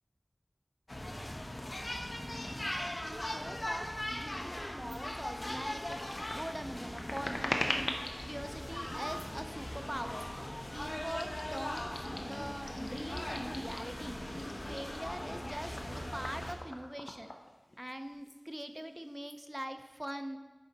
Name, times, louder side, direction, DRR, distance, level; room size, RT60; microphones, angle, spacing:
sound 1, 0.9-16.5, left 1 dB, 65° left, 0.9 m, -40 dB
voice 1, 2.5-6.0 6.3-7.9 8.2-10.3 10.7-17.3 17.8-20.4, equal, 15° right, 8 dB, 0.5 m, -43 dB
sound 2, 4.9-5.0 5.4-8.3 9.1-9.5 10.1-10.4 10.7-14.0 14.3-17.9 18.2-18.4 18.7-19.4, left 1 dB, 85° left, 0.6 m, -42 dB
9.8 x 4.2 x 4.0 m, 1.2 s
wide cardioid pair, 45°, 0 cm